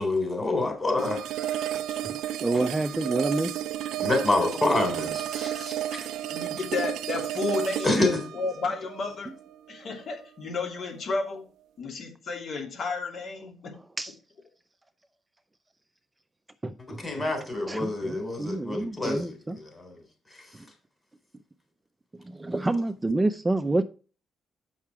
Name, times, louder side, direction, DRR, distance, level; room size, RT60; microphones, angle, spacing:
voice 1, 0.0-1.6 2.5-2.7 4.0-6.1 7.8-8.2 16.9-20.0, left 2 dB, 20° left, 3.4 m, -27 dB
sound 1, 1.0-10.0, right 12 dB, 85° right, 0.5 m, -32 dB
voice 2, 2.4-3.5 14.0-14.1 16.6-17.0 17.7-19.6 22.2-23.8, right 2 dB, 15° right, 0.5 m, -28 dB
voice 3, 6.3-8.0 8.3-9.3 9.7-11.4 11.8-13.7, left 4 dB, 55° left, 2.9 m, -32 dB
7.3 x 5.9 x 4.6 m
cardioid pair, 90°, 0 cm